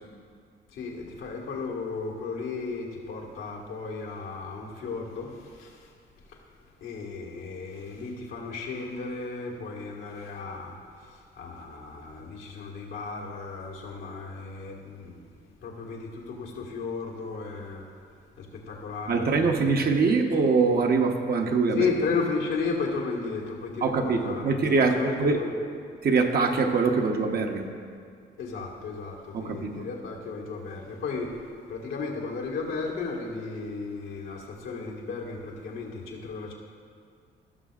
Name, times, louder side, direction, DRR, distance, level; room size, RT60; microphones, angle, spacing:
voice 1, 0.7-5.9 6.8-10.8 11.1-15.3 15.6-17.9 18.4-19.9 21.7-24.7 24.9-25.5 28.4-31.4 31.7-36.5, left 4 dB, 90° left, -3 dB, 1.7 m, -34 dB
voice 2, 19.1-21.9 23.8-25.4 26.0-27.7 29.3-29.9, right 4 dB, 50° right, 3 dB, 0.9 m, -23 dB
17.0 x 6.3 x 2.4 m, 2.2 s
cardioid pair, 90°, 20 cm